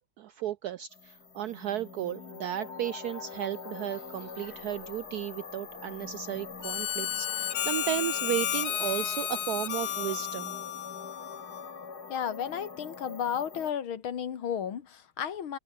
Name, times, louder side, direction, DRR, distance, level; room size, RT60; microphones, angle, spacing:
voice 1, 0.2-10.5, right 12 dB, 80° right, 0.8 m, -34 dB
sound 1, 0.9-13.7, left 5 dB, 50° left, 3.0 m, -44 dB
Harmonica, 6.6-11.8, left 11 dB, 70° left, 1.7 m, -33 dB
voice 2, 12.1-15.6, left 8 dB, 85° left, 2.5 m, -33 dB
omnidirectional pair, 2.2 m